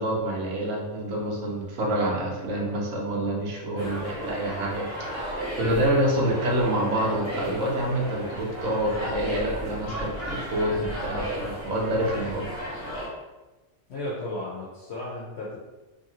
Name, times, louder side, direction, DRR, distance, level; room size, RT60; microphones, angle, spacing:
voice 1, 0.0-4.8 5.1-12.5, right 1 dB, 80° right, -1 dB, 1.1 m, -27 dB
voice 2, 3.7-4.1 13.9-15.6, left 2 dB, 60° left, -6 dB, 0.8 m, -35 dB
sound 1, 3.8-13.1, equal, 15° left, 0.8 m, -34 dB
2.7 x 2.6 x 2.8 m, 1.1 s
omnidirectional pair, 1.4 m